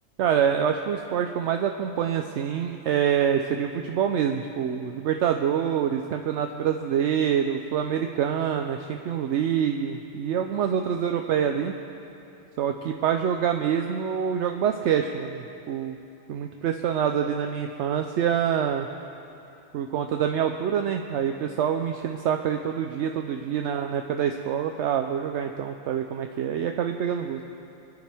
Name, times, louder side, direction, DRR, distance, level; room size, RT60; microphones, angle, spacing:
voice 1, 0.2-11.7 12.6-16.0 16.3-18.9 19.7-27.4, right 8 dB, 70° right, 5 dB, 0.9 m, -26 dB
25.5 x 10.5 x 3.4 m, 2.8 s
omnidirectional pair, 1.3 m